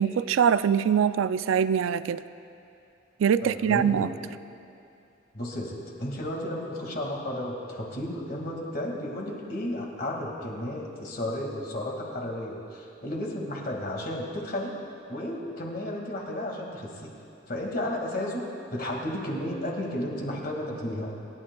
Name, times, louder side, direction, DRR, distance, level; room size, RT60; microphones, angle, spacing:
voice 1, 0.0-2.2 3.2-4.1, right 8 dB, 85° right, 14 dB, 0.3 m, -23 dB
voice 2, 3.4-4.1 5.3-14.7 15.1-17.1 17.5-21.1, left 1 dB, 45° left, -1 dB, 2.0 m, -33 dB
26.5 x 12.0 x 2.3 m, 2.6 s
head